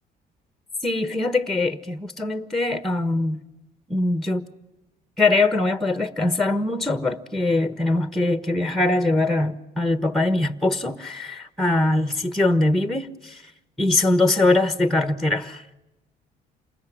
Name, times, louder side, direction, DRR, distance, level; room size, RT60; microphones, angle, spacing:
voice 1, 0.8-3.4 3.9-4.4 5.2-13.5 13.8-15.7, left 2 dB, ahead, 1.3 m, -22 dB
28.5 x 20.5 x 9.2 m
cardioid pair, 110°, 17 cm